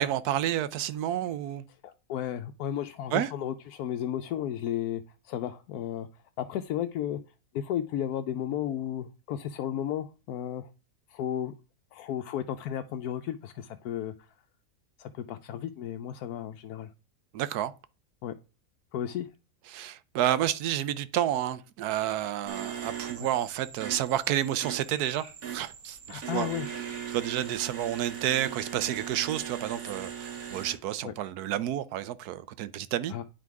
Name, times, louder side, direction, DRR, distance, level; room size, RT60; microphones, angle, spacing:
voice 1, 0.0-1.6 3.1-3.3 17.3-17.7 19.7-26.5 27.1-33.1, right 12 dB, 85° right, 1.2 m, -30 dB
voice 2, 1.8-6.1 6.4-7.2 7.5-10.7 11.1-11.5 11.9-14.1 15.0-16.9 18.2-18.3 18.9-19.3 23.2-23.3 26.1-26.7 31.0-31.1 33.1-33.2, left 10 dB, 80° left, 1.1 m, -33 dB
sound 1, 22.5-30.7, right 8 dB, 65° right, 1.8 m, -39 dB
sound 2, 24.9-25.4 26.6-27.2 28.0-28.7 30.0-30.1, right 2 dB, 40° right, 2.6 m, -52 dB
9.8 x 3.8 x 4.7 m
omnidirectional pair, 1.6 m